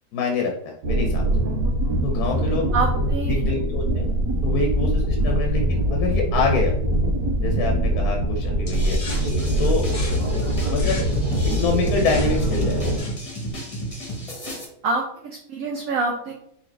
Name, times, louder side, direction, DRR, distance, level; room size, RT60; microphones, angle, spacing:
voice 1, 0.1-1.2 2.0-2.7 3.3-4.1 4.4-6.7 7.4-9.0 9.6-9.8 10.5-11.0 11.5-13.0, left 4 dB, 75° left, 1 dB, 1.2 m, -26 dB
sound 1, 0.8-13.0, right 1 dB, 85° right, 1.4 m, -23 dB
voice 2, 2.7-3.4 14.8-16.3, right 3 dB, 65° right, 0 dB, 0.9 m, -26 dB
sound 2, 8.7-13.5, left 3 dB, 50° left, 0.5 m, -39 dB
sound 3, 8.7-14.6, equal, 25° left, 0.9 m, -33 dB
5.2 x 2.8 x 3.2 m, 0.71 s
omnidirectional pair, 1.8 m